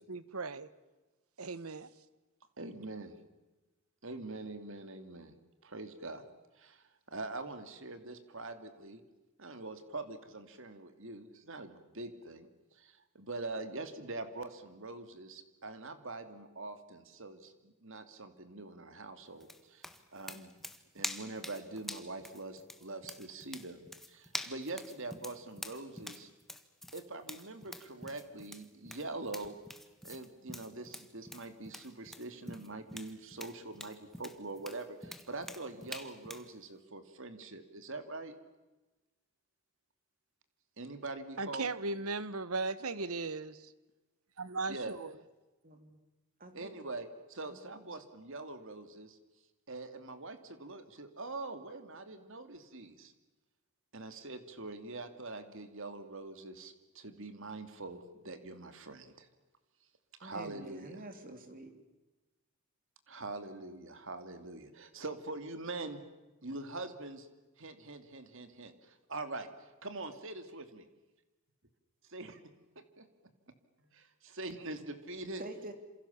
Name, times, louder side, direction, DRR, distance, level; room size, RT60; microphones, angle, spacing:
voice 1, 0.1-0.7 1.4-1.9 41.4-43.7 44.4-45.1, right 3 dB, 80° right, 16 dB, 1.3 m, -37 dB
voice 2, 2.6-3.1 4.0-5.3 5.6-6.2 6.5-9.0 9.4-20.5 20.9-26.3 26.9-29.5 30.0-38.3 40.8-41.7 44.7-45.0 46.5-49.2 49.7-53.1 53.9-59.3 60.2-61.0 63.1-66.0 66.4-67.3 67.6-70.8 72.1-72.4 72.8-73.1 73.8-75.4, right 2 dB, 60° right, 9 dB, 2.5 m, -44 dB
sound 1, 19.4-36.5, left 1 dB, ahead, 1.4 m, -46 dB
voice 3, 46.4-46.7 47.5-47.6 60.2-61.7 75.4-75.7, right 1 dB, 40° right, 7 dB, 3.4 m, -47 dB
28.0 x 27.5 x 7.2 m, 1.1 s
head